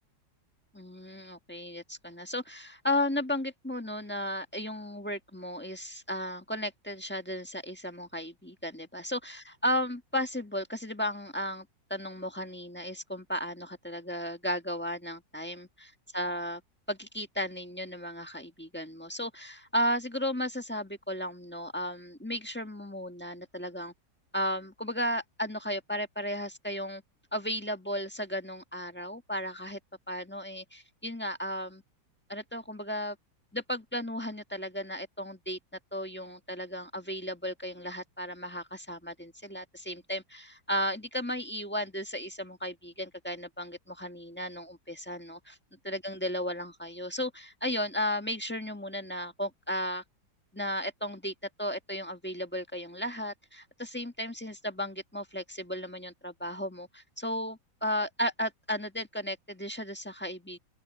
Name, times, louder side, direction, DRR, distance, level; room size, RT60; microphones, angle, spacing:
voice 1, 0.7-15.7 16.1-16.6 16.9-23.9 24.3-27.0 27.3-29.8 30.1-31.8 32.3-33.2 33.5-35.6 35.9-45.6 45.8-50.0 50.5-51.3 51.6-60.6, equal, 5° left, 1.3 m, -34 dB
open air
omnidirectional pair, 2.1 m